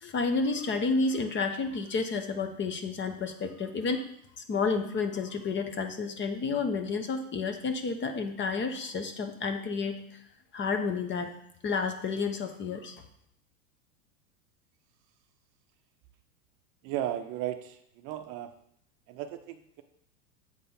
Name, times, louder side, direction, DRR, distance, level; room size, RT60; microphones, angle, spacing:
voice 1, 0.0-4.1 4.5-10.2 10.5-11.3 11.6-13.0, left 4 dB, 25° left, 7 dB, 0.9 m, -30 dB
voice 2, 16.8-18.5 19.1-19.8, right 12 dB, 40° right, 7 dB, 0.7 m, -35 dB
8.0 x 4.2 x 5.4 m, 0.69 s
hypercardioid pair, 100°, 48 cm